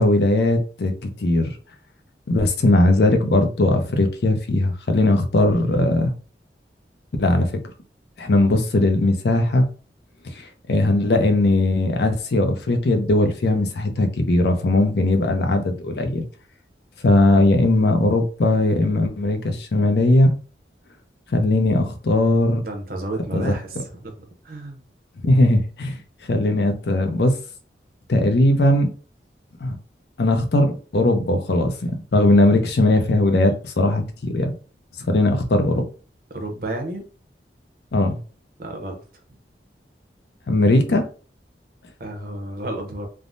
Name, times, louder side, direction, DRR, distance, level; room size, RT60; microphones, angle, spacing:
voice 1, 0.0-1.5 2.3-6.1 7.2-7.6 8.2-9.6 10.3-16.3 17.0-20.3 21.3-22.6 23.3-23.5 25.2-26.0 26.3-27.4 28.1-28.9 29.6-29.8 30.2-34.5 35.1-35.8 37.9-38.2 40.5-41.0, left 2 dB, 70° left, 6 dB, 0.5 m, -19 dB
voice 2, 22.6-24.8 36.3-37.0 38.6-39.0 42.0-43.1, right 1 dB, 55° right, 3 dB, 0.7 m, -31 dB
3.4 x 2.0 x 2.5 m, 0.37 s
head